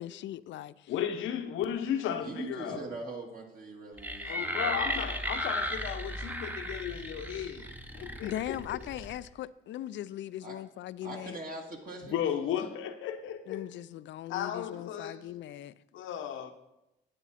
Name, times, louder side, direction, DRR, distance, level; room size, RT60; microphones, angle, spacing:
voice 1, 0.0-0.7 8.2-11.4 13.5-15.7, left 12 dB, 65° left, 0.4 m, -39 dB
voice 2, 0.9-2.8 4.3-7.7 7.9-9.1 12.1-13.7 14.3-15.2 15.9-16.5, left 9 dB, 85° left, 1.0 m, -35 dB
voice 3, 2.2-5.2 10.4-10.6 11.0-12.1, right 2 dB, 45° right, 2.4 m, -42 dB
sound 1, 4.0-9.3, equal, 10° right, 0.9 m, -35 dB
10.0 x 8.8 x 4.2 m
cardioid pair, 90°, 20 cm